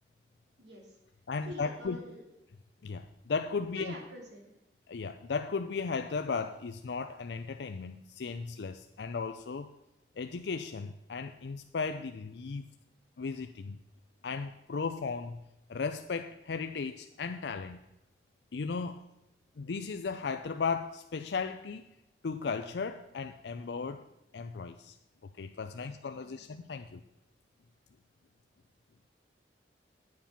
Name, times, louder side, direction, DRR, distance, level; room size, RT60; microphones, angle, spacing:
voice 1, 0.6-0.9 1.5-2.2 3.7-4.5 26.4-26.5, equal, 80° right, 0 dB, 2.7 m, -46 dB
voice 2, 1.3-2.0 2.8-3.9 4.9-9.7 10.2-12.7 13.2-13.8 14.2-15.4 15.7-17.8 18.5-19.0 19.6-21.9 22.2-24.1 24.3-25.0 25.4-27.0, left 5 dB, 75° left, 8 dB, 0.5 m, -36 dB
9.5 x 8.9 x 5.8 m, 0.90 s
head